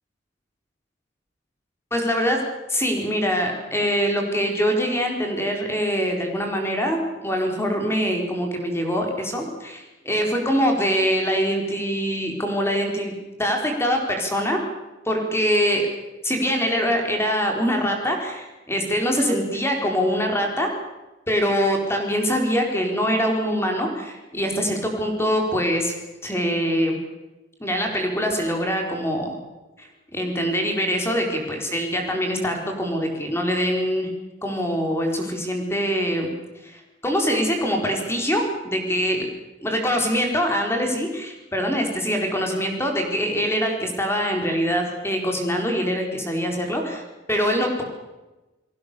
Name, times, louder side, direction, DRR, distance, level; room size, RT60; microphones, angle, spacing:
voice 1, 1.9-2.4 2.7-13.1 13.4-14.6 15.1-15.8 16.2-20.7 21.3-25.9 26.2-27.0 27.6-29.4 30.1-34.1 34.4-36.3 36.6-39.3 39.6-47.0 47.3-47.8, equal, 15° left, 3 dB, 4.3 m, -23 dB
30.0 x 19.0 x 6.9 m, 1.1 s
head